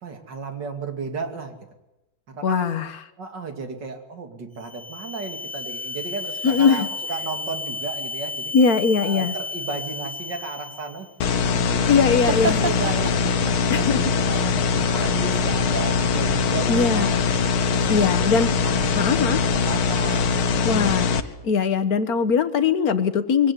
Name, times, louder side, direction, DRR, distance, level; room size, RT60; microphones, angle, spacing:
voice 1, 0.0-1.7 2.3-2.7 3.2-8.5 9.0-14.6 14.9-17.2 17.7-20.7, right 4 dB, 55° right, 6 dB, 3.2 m, -34 dB
voice 2, 2.4-2.9 6.4-6.9 8.5-9.3 11.9-12.6 13.7-14.0 16.7-17.2 17.9-18.5 19.0-19.4 20.6-21.0 21.4-23.5, left 5 dB, 50° left, 9 dB, 1.5 m, -20 dB
sound 1, 4.5-11.1, left 3 dB, 10° left, 1.2 m, -33 dB
sound 2, 5.9-6.9 10.7-13.9, right 3 dB, 35° right, 0.8 m, -32 dB
sound 3, 11.2-21.2, left 5 dB, 75° left, 2.0 m, -22 dB
23.0 x 17.0 x 9.8 m, 0.96 s
omnidirectional pair, 2.3 m